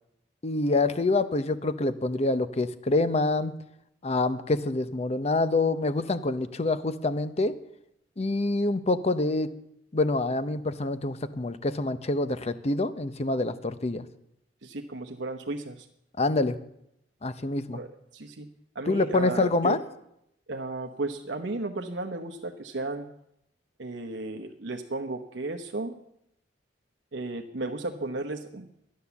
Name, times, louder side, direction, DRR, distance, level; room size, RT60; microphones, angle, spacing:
voice 1, 0.4-3.5 4.0-7.5 8.2-9.5 9.9-14.0 16.2-16.6 17.2-17.8 18.9-19.8, left 2 dB, 35° left, 12 dB, 0.7 m, -26 dB
voice 2, 14.6-15.9 17.7-17.9 18.1-18.5 18.7-19.8 20.5-23.1 23.8-26.0 27.1-28.7, right 2 dB, 70° right, 4 dB, 1.0 m, -34 dB
12.0 x 10.5 x 7.0 m, 0.78 s
head